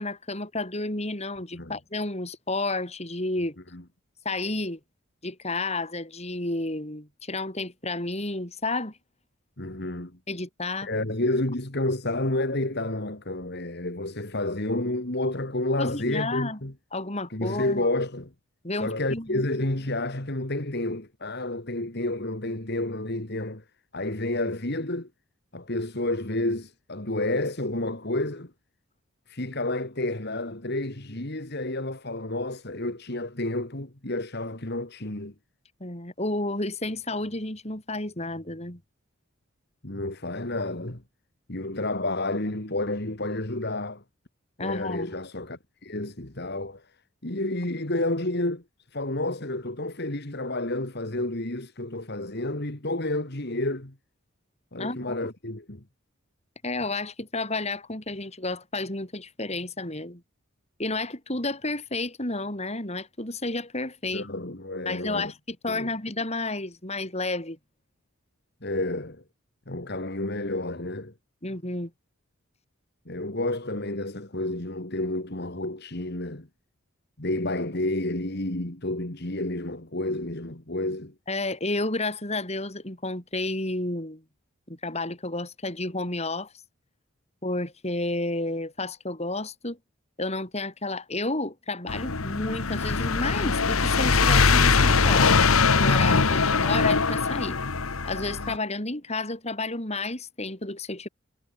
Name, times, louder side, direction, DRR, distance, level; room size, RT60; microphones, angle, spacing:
voice 1, 0.0-3.6 4.2-4.8 5.2-8.9 10.3-10.9 15.8-16.6 16.9-17.9 18.6-19.4 35.8-38.8 44.6-45.1 54.8-55.2 56.6-60.2 60.8-64.3 64.8-67.6 71.4-71.9 81.3-84.2 84.7-86.5 87.4-89.8 90.2-95.4 95.7-97.6 98.0-101.1, left 2 dB, 30° left, 4.7 m, -31 dB
voice 2, 9.6-10.1 10.8-16.7 17.3-18.3 18.8-23.6 23.9-25.1 25.5-28.5 29.3-35.3 39.8-41.0 41.5-44.0 44.6-46.8 47.2-48.6 48.9-53.9 54.7-55.8 64.1-65.3 65.7-65.9 68.6-69.2 69.7-71.1 73.1-76.5 77.2-81.1, left 2 dB, 50° left, 2.6 m, -30 dB
sound 1, 91.9-98.6, left 4 dB, 85° left, 1.4 m, -22 dB
head